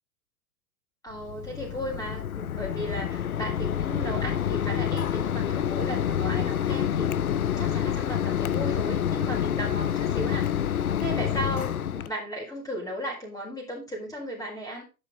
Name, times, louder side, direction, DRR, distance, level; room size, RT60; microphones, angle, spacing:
voice 1, 1.0-7.3 7.6-10.6 11.0-14.8, right 1 dB, 10° left, -3 dB, 4.3 m, -35 dB
Mechanisms, 1.1-12.1, left 9 dB, 70° left, 0.9 m, -27 dB
11.0 x 8.0 x 3.8 m, 0.30 s
figure-of-eight pair, 95°, 44 cm